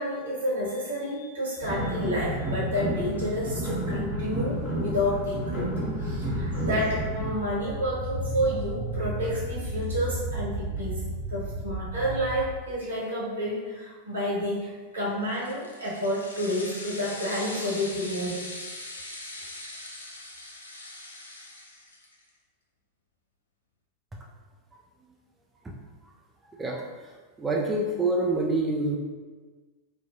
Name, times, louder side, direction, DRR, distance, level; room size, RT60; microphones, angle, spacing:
voice 1, 0.0-5.7 6.0-11.0 11.3-18.5, equal, 75° right, -7 dB, 1.2 m, -30 dB
sound 1, 1.6-7.3, equal, 30° left, 1.2 m, -31 dB
sound 2, 5.2-12.5, right 1 dB, 40° right, 0.7 m, -34 dB
sound 3, 15.2-22.2, left 2 dB, 75° left, 0.4 m, -41 dB
voice 2, 27.4-29.0, right 2 dB, 15° right, -2 dB, 0.4 m, -26 dB
3.7 x 2.2 x 2.8 m, 1.4 s
figure-of-eight pair, 90°, 0 cm